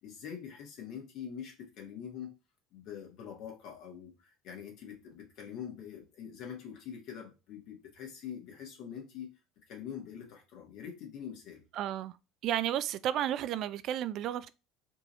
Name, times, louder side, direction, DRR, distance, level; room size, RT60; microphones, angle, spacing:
voice 1, 0.0-2.3 2.7-9.3 9.7-11.6, left 8 dB, 65° left, 1.5 m, -44 dB
voice 2, 11.8-12.1 12.4-14.5, right 11 dB, 60° right, 0.3 m, -32 dB
4.5 x 2.7 x 3.1 m
hypercardioid pair, 75°, 0 cm